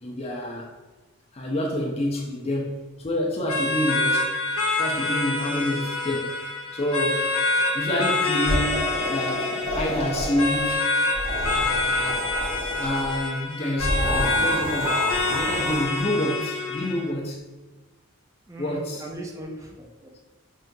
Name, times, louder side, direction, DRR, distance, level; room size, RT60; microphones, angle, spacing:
voice 1, 0.0-0.7 1.3-4.3 4.8-6.4 6.7-7.3 7.7-10.9 11.5-12.2 12.8-17.4 18.6-19.1, left 1 dB, 30° left, 0.6 m, -28 dB
sound 1, 3.5-17.1, left 2 dB, 70° left, 0.6 m, -26 dB
sound 2, 8.4-10.8 11.1-13.2 13.8-16.1, equal, 60° right, 1.0 m, -30 dB
voice 2, 18.5-20.2, right 1 dB, 15° right, 0.4 m, -39 dB
5.5 x 2.4 x 2.7 m
head